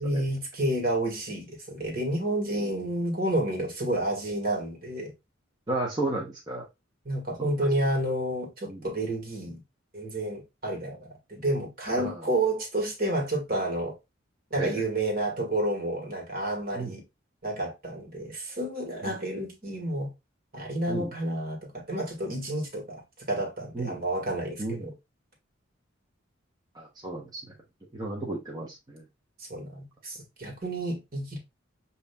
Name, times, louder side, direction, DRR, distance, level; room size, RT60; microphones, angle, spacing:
voice 1, 0.0-5.1 7.1-9.6 9.9-13.9 14.5-17.0 17.4-20.1 20.5-23.0 23.3-24.9 29.4-31.4, right 1 dB, 50° right, 1.9 m, -30 dB
voice 2, 5.7-6.7 7.4-7.5 8.7-8.9 12.0-12.3 14.6-14.8 16.7-16.9 19.0-19.1 20.9-21.1 23.7-24.0 24.6-24.9 26.7-27.6 27.9-29.0, right 2 dB, 20° right, 0.8 m, -33 dB
7.4 x 2.8 x 2.3 m
head